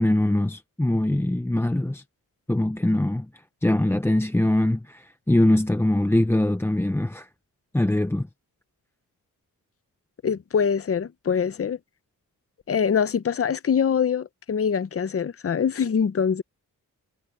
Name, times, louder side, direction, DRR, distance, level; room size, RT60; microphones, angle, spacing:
voice 1, 0.0-2.0 2.5-3.3 3.6-7.3 7.7-8.3, left 1 dB, 5° left, 0.7 m, -22 dB
voice 2, 10.2-11.8 12.7-16.4, left 7 dB, 40° left, 0.8 m, -24 dB
cardioid pair, 90°, 36 cm